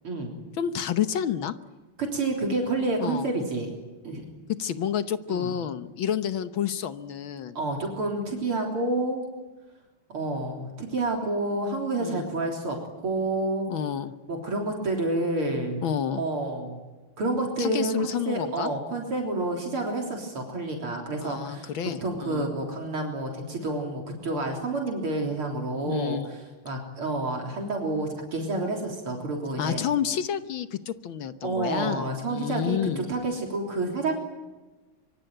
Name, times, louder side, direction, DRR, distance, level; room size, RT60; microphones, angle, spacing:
voice 1, 0.6-1.5 3.0-3.3 4.6-7.6 12.0-12.3 13.7-14.1 15.8-16.2 17.6-18.7 21.2-22.5 25.9-26.3 29.6-33.0, left 9 dB, 70° left, 11 dB, 1.8 m, -29 dB
voice 2, 2.0-3.7 4.0-4.2 5.3-5.5 7.6-9.2 10.1-12.8 13.0-13.7 14.3-15.8 16.1-16.8 17.2-21.7 22.0-26.4 26.6-29.8 31.4-34.1, right 2 dB, 75° right, 1 dB, 4.4 m, -29 dB
24.5 x 24.0 x 9.0 m, 1.2 s
omnidirectional pair, 2.4 m